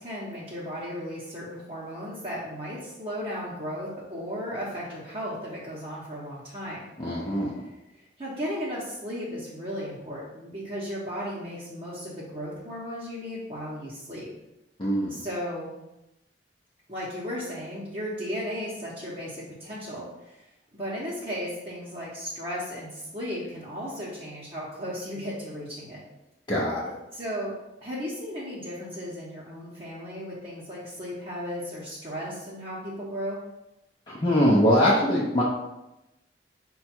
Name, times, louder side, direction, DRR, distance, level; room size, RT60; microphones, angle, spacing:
voice 1, 0.0-6.8 7.5-7.7 8.2-14.3 15.1-15.7 16.9-20.5 20.7-26.0 27.1-27.5 27.8-33.4, equal, 30° right, -7 dB, 0.9 m, -35 dB
voice 2, 7.0-7.6 14.8-15.2 26.5-26.9 34.1-35.4, equal, 25° left, -6 dB, 0.6 m, -22 dB
4.9 x 2.3 x 4.3 m, 0.93 s
head